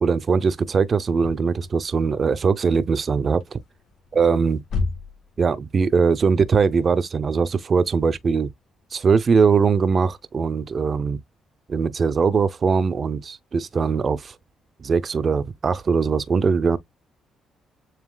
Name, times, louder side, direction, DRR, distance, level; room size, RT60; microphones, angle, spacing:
voice 1, 0.0-3.6 4.1-4.6 5.4-8.5 8.9-11.2 11.7-14.3 14.8-16.8, right 5 dB, 45° right, 0.5 m, -21 dB
sound 1, 1.2-9.0, left 4 dB, 70° left, 2.3 m, -35 dB
7.3 x 2.7 x 2.2 m
cardioid pair, 90°, 0 cm